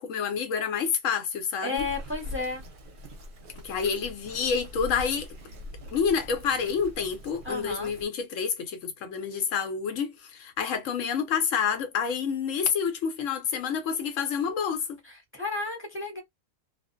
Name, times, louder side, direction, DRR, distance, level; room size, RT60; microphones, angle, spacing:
voice 1, 0.0-1.8 3.6-5.3 5.9-15.0, left 6 dB, 80° left, 1.1 m, -28 dB
voice 2, 1.6-2.6 7.4-7.9 15.0-16.2, left 3 dB, 15° right, 0.6 m, -33 dB
Bird vocalization bird call bird song, 1.8-8.0, left 1 dB, 50° right, 0.7 m, -42 dB
2.5 x 2.1 x 2.4 m
omnidirectional pair, 1.3 m